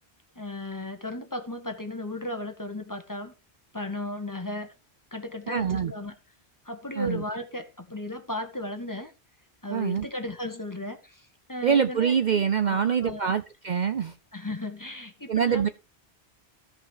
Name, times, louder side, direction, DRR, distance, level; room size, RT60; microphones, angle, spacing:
voice 1, 0.3-3.3 3.7-4.7 5.1-6.1 6.6-9.1 9.6-12.2 12.6-13.3 14.3-15.7, left 1 dB, 20° left, 1.5 m, -35 dB
voice 2, 5.5-5.9 7.0-7.2 9.7-10.1 11.6-14.1 15.3-15.7, right 7 dB, 50° right, 0.7 m, -25 dB
15.5 x 5.4 x 4.9 m
omnidirectional pair, 1.1 m